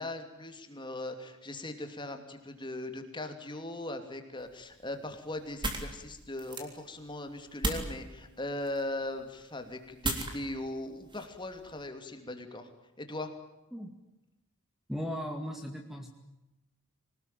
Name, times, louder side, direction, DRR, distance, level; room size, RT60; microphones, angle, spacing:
voice 1, 0.0-12.7 13.0-13.3, left 1 dB, 20° left, 6 dB, 2.9 m, -39 dB
sound 1, 4.4-11.9, right 2 dB, 20° right, 3.6 m, -39 dB
voice 2, 14.9-16.1, equal, ahead, 3 dB, 2.1 m, -37 dB
25.5 x 20.0 x 9.2 m, 0.96 s
head